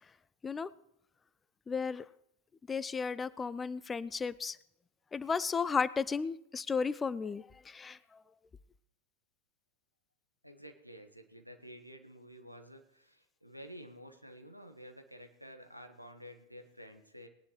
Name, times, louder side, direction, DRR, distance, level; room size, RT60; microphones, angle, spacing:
voice 1, 1.7-2.1 2.7-4.6 5.1-8.2, left 5 dB, 15° left, 19 dB, 0.3 m, -34 dB
voice 2, 10.4-17.3, equal, 90° right, 6 dB, 1.2 m, -51 dB
19.0 x 10.0 x 3.1 m, 0.78 s
figure-of-eight pair, 90°, 0 cm